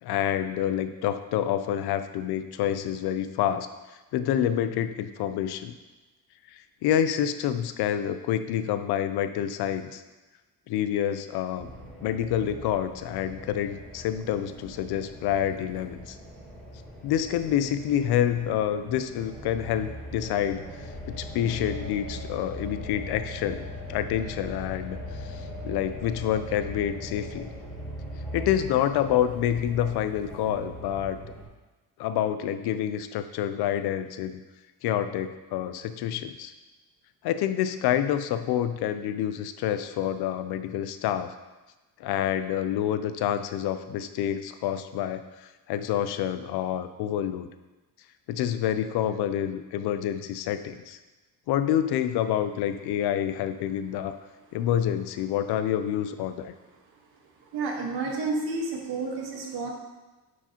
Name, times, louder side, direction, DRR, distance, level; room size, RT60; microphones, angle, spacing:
voice 1, 0.0-3.7 4.1-5.7 6.5-10.0 10.7-11.7 12.0-16.2 17.0-25.0 25.2-27.5 28.3-31.2 32.0-34.4 34.8-36.5 37.2-41.3 42.0-47.5 48.3-51.0 51.5-54.2 54.5-56.5, left 10 dB, 80° left, 11 dB, 0.6 m, -28 dB
sound 1, 11.6-31.4, left 1 dB, 5° left, 1.2 m, -40 dB
voice 2, 57.5-59.7, right 3 dB, 85° right, 0 dB, 1.5 m, -30 dB
9.8 x 4.7 x 2.9 m, 1.1 s
cardioid pair, 155°, 38 cm